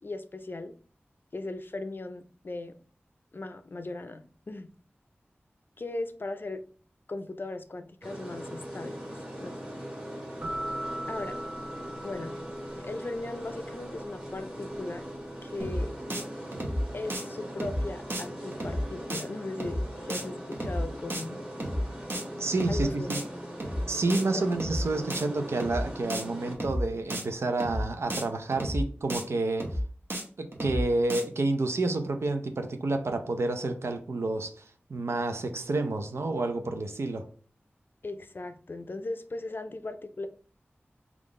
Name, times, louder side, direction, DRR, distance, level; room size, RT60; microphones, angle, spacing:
voice 1, 0.0-0.7 1.3-2.8 3.3-4.7 5.8-6.6 7.1-9.6 11.1-11.4 12.0-12.4 12.8-15.0 15.4-15.9 16.9-21.4 22.7-23.2 24.3-24.5 38.0-40.3, left 2 dB, 55° left, 0.4 m, -38 dB
sound 1, 8.0-26.6, equal, 20° right, 1.5 m, -40 dB
sound 2, 10.4-13.2, right 1 dB, 35° right, 1.6 m, -39 dB
sound 3, 15.6-15.8 16.1-16.2 16.5-16.8 17.1-17.2 17.6-17.8 18.1-18.2 18.5-18.8 19.1-19.2 19.6-19.8 20.1-20.2 20.5-20.8 21.1-21.2 21.6-21.8 22.1-22.2 22.5-22.8 23.1-23.2 23.6-23.8 24.1-24.2 24.5-24.8 25.1-25.2 25.6-25.8 26.1-26.2 26.5-26.8 27.1-27.2 27.6-27.8 28.1-28.2 28.5-28.8 29.1-29.2 29.6-29.8 30.1-30.2 30.5-30.8 31.1-31.2, equal, 60° right, 0.8 m, -32 dB
voice 2, 22.4-23.2 23.9-29.8 30.4-34.6 34.9-37.3, right 2 dB, 85° right, 0.5 m, -29 dB
3.6 x 2.4 x 3.6 m
wide cardioid pair, 65°, 4 cm